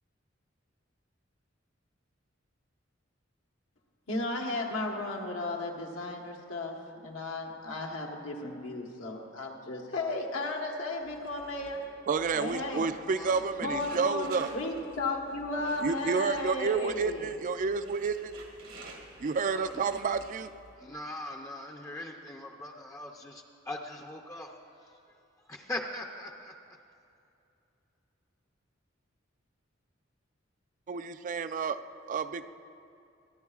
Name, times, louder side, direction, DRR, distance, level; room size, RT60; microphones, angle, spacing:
voice 1, 4.1-11.8 12.3-12.8 13.6-17.3, left 2 dB, 90° left, 0 dB, 1.4 m, -34 dB
sound 1, 11.0-20.7, right 2 dB, 85° right, 1.7 m, -50 dB
voice 2, 12.1-14.5 15.8-18.3 19.2-20.5 30.9-31.8 32.1-32.5, right 5 dB, 40° right, 11 dB, 0.4 m, -30 dB
voice 3, 12.6-13.5 19.5-19.8 20.8-25.0 25.5-26.5, left 1 dB, 15° left, 1 dB, 0.5 m, -41 dB
25.0 x 10.0 x 2.4 m, 2.6 s
head